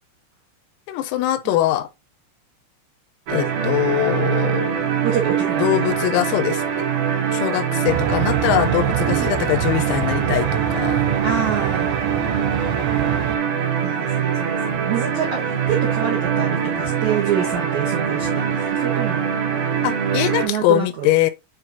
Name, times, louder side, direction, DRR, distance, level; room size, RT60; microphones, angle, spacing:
voice 1, 0.9-1.9 3.3-4.7 5.6-6.6 7.3-11.0 19.8-21.3, left 14 dB, 85° left, 3.7 m, -22 dB
sound 1, 3.3-20.5, right 7 dB, 55° right, 3.3 m, -23 dB
voice 2, 5.0-6.0 9.1-9.3 11.2-12.0 13.8-19.3 20.4-21.1, right 8 dB, 70° right, 1.7 m, -27 dB
sound 2, 7.9-13.4, right 13 dB, 90° right, 2.4 m, -26 dB
9.7 x 4.5 x 2.8 m
omnidirectional pair, 5.9 m